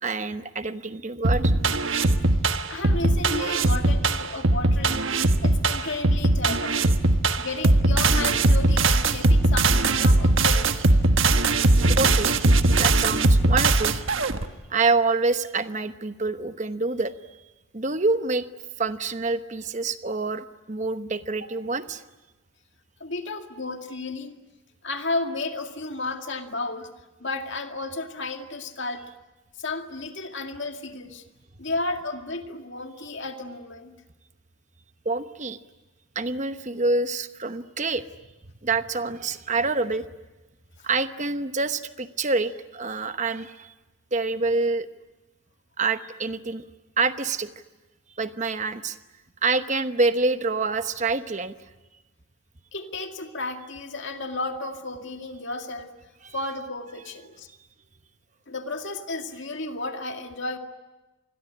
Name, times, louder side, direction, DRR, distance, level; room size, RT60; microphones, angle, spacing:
voice 1, 0.0-1.7 11.9-12.3 12.8-14.1 14.7-17.4 17.7-18.5 18.8-22.0 35.0-35.6 36.1-38.0 38.6-40.1 40.8-43.7 44.1-44.9 45.8-46.6 47.0-47.5 48.1-49.0 49.4-51.5 56.2-56.3, right 3 dB, 35° right, 10 dB, 1.0 m, -26 dB
sound 1, 1.2-14.4, right 2 dB, 60° right, 1.4 m, -20 dB
voice 2, 2.7-5.0 5.4-6.9 7.4-10.7 21.4-21.5 23.0-24.4 24.8-26.9 27.2-29.1 29.6-31.2 31.6-33.9 40.8-40.9 52.7-55.9 56.3-57.5 58.5-60.6, left 2 dB, 55° left, 5 dB, 2.2 m, -33 dB
27.5 x 21.5 x 9.9 m, 1.1 s
head